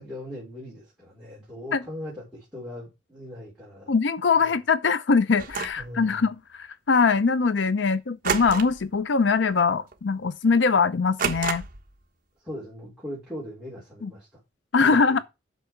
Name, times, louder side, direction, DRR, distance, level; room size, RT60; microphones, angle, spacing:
voice 1, 0.0-3.9 4.3-4.6 5.8-6.3 12.4-14.3 14.8-15.2, left 1 dB, 5° right, 4.2 m, -39 dB
voice 2, 3.9-11.6 14.0-14.1 14.7-15.2, left 5 dB, 75° left, 0.6 m, -22 dB
sound 1, 5.4-5.9 8.2-8.9 9.2-9.5 9.9-10.0 11.2-11.9, right 5 dB, 50° right, 1.3 m, -29 dB
8.2 x 6.2 x 4.5 m
head